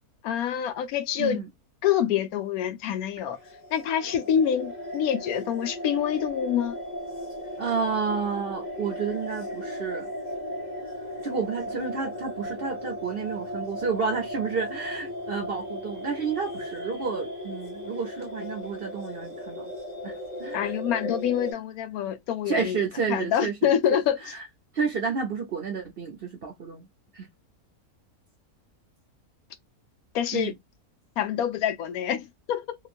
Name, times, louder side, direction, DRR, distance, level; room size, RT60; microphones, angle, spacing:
voice 1, 0.2-1.4 1.8-3.4 3.7-6.8 20.5-22.8 23.1-24.2 30.1-30.5 31.2-32.8, left 9 dB, 75° left, 1.0 m, -26 dB
sound 1, 3.3-21.5, equal, 35° left, 1.0 m, -36 dB
voice 2, 7.6-10.1 11.2-19.7 20.0-20.7 22.5-23.7 24.2-24.5 24.7-26.9 27.1-27.3 30.3-30.5, right 5 dB, 55° right, 0.6 m, -30 dB
3.0 x 2.3 x 2.4 m
omnidirectional pair, 1.6 m